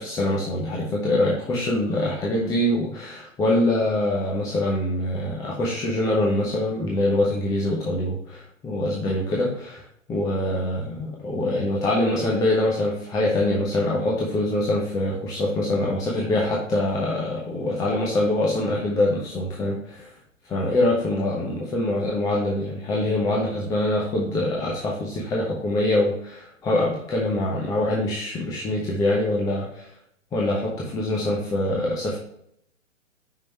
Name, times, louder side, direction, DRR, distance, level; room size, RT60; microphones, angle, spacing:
voice 1, 0.0-9.8 10.1-20.1 20.5-29.9 30.3-32.2, left 1 dB, 10° left, -3 dB, 0.7 m, -24 dB
5.5 x 5.1 x 3.4 m, 0.72 s
figure-of-eight pair, 120°, 39 cm